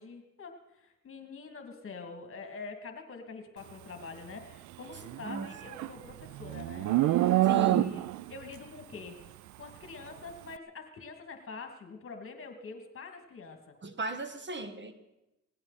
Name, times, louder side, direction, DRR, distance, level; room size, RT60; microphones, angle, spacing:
voice 1, 0.0-9.2 9.6-13.7, left 4 dB, 45° left, 5 dB, 2.3 m, -45 dB
Livestock farm animals working animals, 5.0-8.3, right 15 dB, 75° right, 0.5 m, -27 dB
voice 2, 7.5-8.0 13.8-14.9, right 2 dB, 40° right, 10 dB, 1.3 m, -36 dB
19.0 x 16.0 x 4.2 m, 0.95 s
cardioid pair, 90°, 30 cm